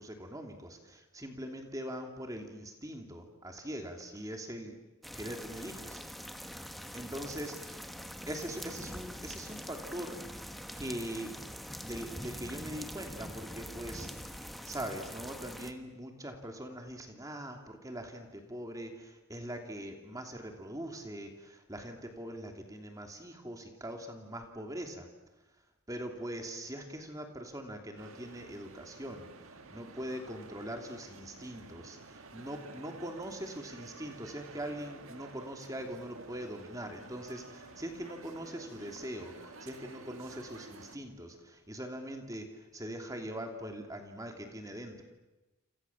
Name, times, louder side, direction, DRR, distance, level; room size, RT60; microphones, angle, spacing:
voice 1, 0.0-4.7 5.1-6.0 6.9-7.5 8.3-10.4 10.8-11.3 11.8-14.1 14.4-25.1 25.9-45.0, right 1 dB, 15° right, 4 dB, 2.9 m, -42 dB
sound 1, 5.0-15.7, equal, ahead, 1.4 m, -44 dB
sound 2, 28.0-41.0, right 3 dB, 65° right, 1.8 m, -51 dB
Bowed string instrument, 36.7-40.4, left 3 dB, 55° left, 5.8 m, -60 dB
28.5 x 28.0 x 7.3 m, 1.1 s
head